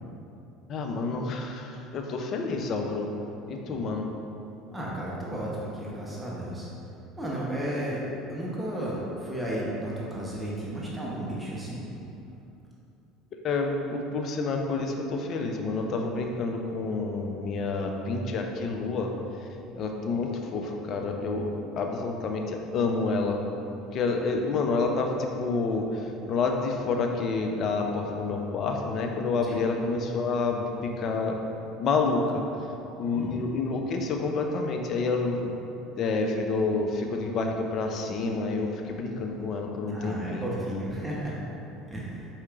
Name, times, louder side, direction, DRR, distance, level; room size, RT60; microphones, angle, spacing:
voice 1, 0.7-3.1 3.5-4.1 13.4-19.1 19.8-23.4 23.9-31.4 31.8-32.4 33.0-35.5 36.0-40.5, left 3 dB, 50° left, 3 dB, 0.5 m, -28 dB
voice 2, 4.7-6.7 7.2-11.9 29.4-29.6 33.1-33.4 39.9-41.4 41.9-42.3, right 1 dB, 10° right, -6 dB, 0.9 m, -33 dB
4.7 x 4.3 x 2.5 m, 2.8 s
hypercardioid pair, 70°, 0 cm